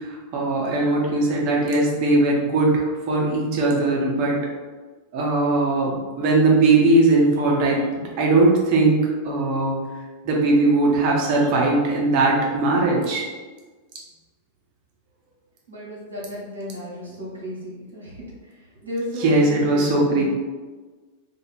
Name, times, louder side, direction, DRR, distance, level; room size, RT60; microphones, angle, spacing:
voice 1, 0.3-4.4 5.1-9.8 10.2-13.2 19.2-20.2, right 2 dB, 45° right, -2 dB, 0.7 m, -19 dB
voice 2, 15.7-20.2, left 1 dB, 70° right, -5 dB, 0.9 m, -34 dB
2.4 x 2.3 x 3.1 m, 1.3 s
figure-of-eight pair, 90°, 0 cm